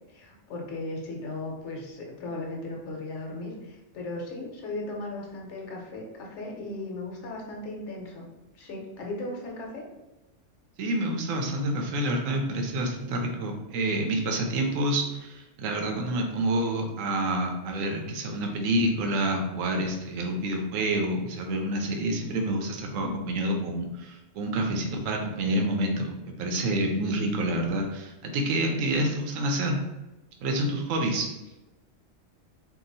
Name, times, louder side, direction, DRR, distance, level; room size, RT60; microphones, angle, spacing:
voice 1, 0.1-8.3 8.5-9.9 28.7-29.1, left 2 dB, 70° left, -1 dB, 1.1 m, -37 dB
voice 2, 10.8-29.8 30.4-31.3, right 1 dB, 90° right, 2 dB, 1.0 m, -28 dB
2.8 x 2.3 x 3.9 m, 1.0 s
omnidirectional pair, 1.3 m